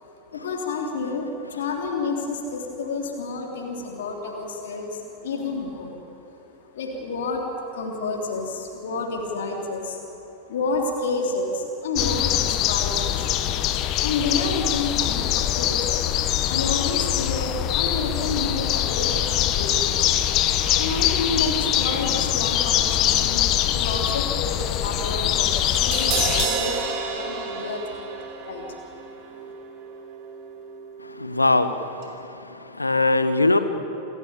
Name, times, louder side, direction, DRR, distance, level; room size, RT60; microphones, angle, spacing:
voice 1, 0.3-6.0 6.6-10.0 10.4-13.3 14.0-16.0 16.4-20.2 20.8-28.7 29.4-29.5, left 3 dB, 60° left, 0 dB, 3.4 m, -30 dB
sound 1, 12.0-26.5, left 12 dB, 35° left, 1.0 m, -23 dB
Crash cymbal, 25.6-31.7 32.0-32.1, right 5 dB, 40° right, 3.4 m, -31 dB
voice 2, 31.2-33.6, left 2 dB, 80° left, 11 dB, 1.1 m, -22 dB
28.0 x 13.5 x 8.5 m, 3.0 s
figure-of-eight pair, 90°, 0 cm